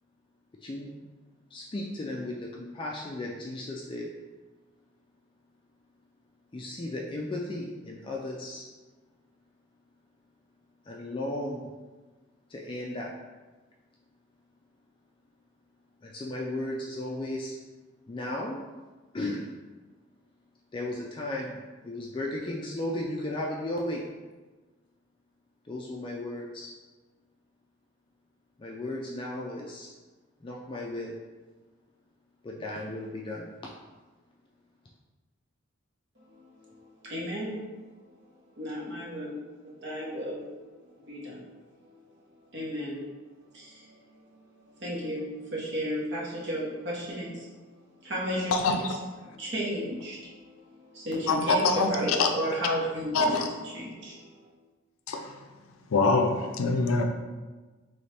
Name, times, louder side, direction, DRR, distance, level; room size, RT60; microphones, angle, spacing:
voice 1, 0.6-1.1 1.5-4.1 6.5-8.7 10.9-11.7 12.5-13.1 16.0-17.6 18.1-18.6 19.1-19.5 20.7-21.6 21.8-24.0 25.6-26.7 28.6-29.9 30.4-31.2 32.4-33.5, left 1 dB, 25° left, -2 dB, 0.3 m, -35 dB
voice 2, 36.2-37.6 38.6-40.5 40.8-41.5 42.5-43.0 43.5-44.3 44.7-47.5 48.0-48.6 49.2-53.4 53.7-54.5, equal, 55° right, -5 dB, 1.0 m, -34 dB
voice 3, 48.5-49.0 51.3-52.3 53.1-53.5 55.1-55.4 55.9-57.0, left 3 dB, 90° left, 4 dB, 0.4 m, -25 dB
4.1 x 3.1 x 3.3 m, 1.3 s
head